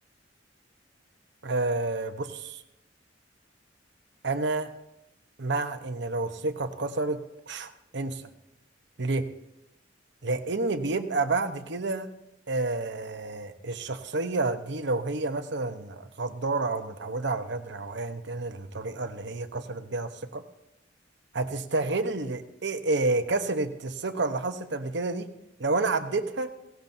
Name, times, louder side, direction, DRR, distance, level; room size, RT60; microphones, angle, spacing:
voice 1, 1.4-2.6 4.2-4.7 5.4-8.2 9.0-9.3 10.2-12.1 12.5-20.4 21.3-25.3 25.6-26.5, right 3 dB, 65° right, 8 dB, 1.0 m, -29 dB
17.5 x 17.5 x 2.7 m, 0.86 s
head